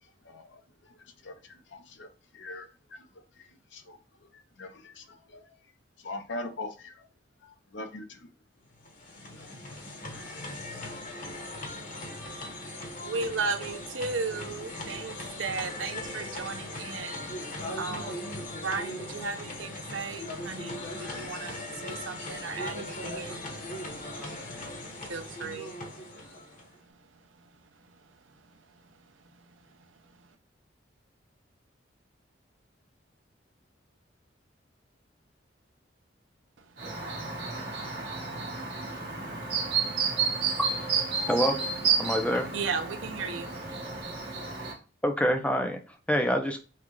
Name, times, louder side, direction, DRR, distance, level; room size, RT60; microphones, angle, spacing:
voice 1, 0.0-5.6 6.0-7.1 7.4-8.3 9.4-9.6, left 2 dB, 75° left, 0.8 m, -43 dB
sound 1, 8.7-26.8, left 1 dB, 45° left, 1.0 m, -39 dB
voice 2, 13.0-30.3 42.5-43.5, right 4 dB, 90° right, 0.7 m, -37 dB
Chirp tweet, 36.8-44.7, right 5 dB, 60° right, 1.7 m, -31 dB
voice 3, 41.2-41.6 42.0-42.5 45.0-45.8 46.1-46.6, equal, 5° left, 0.6 m, -26 dB
5.8 x 2.4 x 3.1 m
head